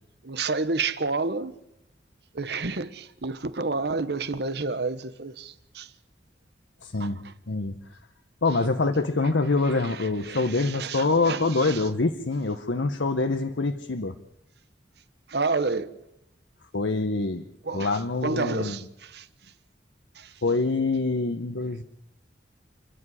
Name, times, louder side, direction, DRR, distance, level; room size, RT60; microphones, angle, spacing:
voice 1, 0.2-1.5 2.3-5.9 7.0-7.3 9.6-11.8 15.3-15.9 17.6-19.3 20.1-20.3, right 3 dB, 65° right, 1.1 m, -30 dB
voice 2, 6.8-7.2 7.5-7.8 8.4-14.1 16.7-17.4 17.7-18.8 20.4-21.8, left 3 dB, 85° left, 1.0 m, -25 dB
28.5 x 10.0 x 9.8 m
head